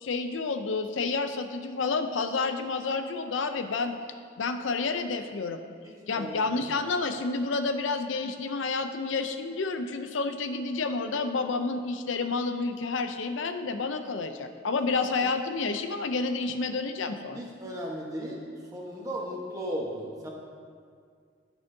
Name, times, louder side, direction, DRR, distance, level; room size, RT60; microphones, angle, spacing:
voice 1, 0.0-3.9 4.4-5.6 6.1-17.4, left 4 dB, 80° left, 8 dB, 0.6 m, -30 dB
voice 2, 5.8-6.8 17.3-18.4 18.7-20.3, equal, 15° right, -2 dB, 1.1 m, -36 dB
13.5 x 6.2 x 2.7 m, 2.1 s
head